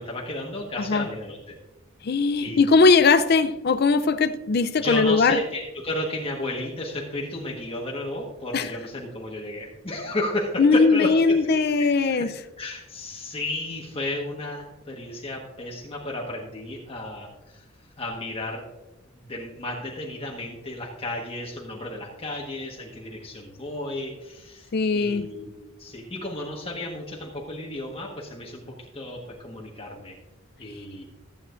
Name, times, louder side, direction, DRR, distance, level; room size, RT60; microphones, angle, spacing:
voice 1, 0.0-1.5 2.4-2.7 4.8-11.6 12.1-12.3 12.6-17.6 18.0-18.6 19.0-25.5 25.8-30.2 30.6-31.0, left 1 dB, 30° left, -3 dB, 1.4 m, -33 dB
voice 2, 2.0-5.4 8.5-8.8 10.6-12.3 24.7-25.3, left 4 dB, 55° left, 11 dB, 0.5 m, -20 dB
15.0 x 8.8 x 2.5 m, 1.0 s
head